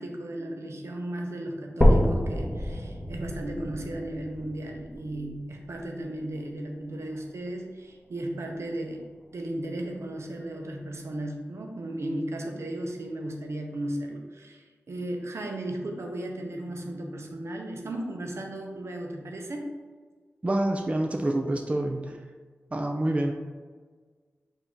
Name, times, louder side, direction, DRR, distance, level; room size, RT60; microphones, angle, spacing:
voice 1, 0.0-9.0 9.3-19.7, right 1 dB, 70° right, 2 dB, 0.7 m, -35 dB
sound 1, 1.8-5.8 6.4-6.5 7.0-7.1 7.5-7.6 8.4-8.5, equal, 25° left, 0.7 m, -26 dB
voice 2, 20.4-22.2 22.7-23.3, right 1 dB, 25° right, 2 dB, 0.4 m, -27 dB
4.1 x 2.7 x 4.4 m, 1.5 s
wide cardioid pair, 60°, 5 cm